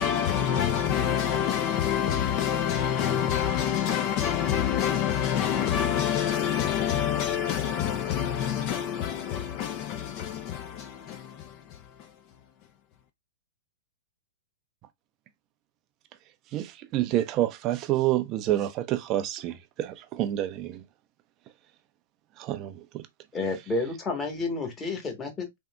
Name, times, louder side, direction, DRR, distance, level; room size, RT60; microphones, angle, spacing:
voice 1, 0.0-12.1, left 9 dB, 40° left, 0.4 m, -27 dB
voice 2, 16.5-20.8 22.4-23.1, right 13 dB, 35° right, 0.4 m, -28 dB
voice 3, 23.3-25.6, left 3 dB, 20° left, 1.1 m, -30 dB
3.5 x 2.6 x 2.2 m
hypercardioid pair, 115°, 0 cm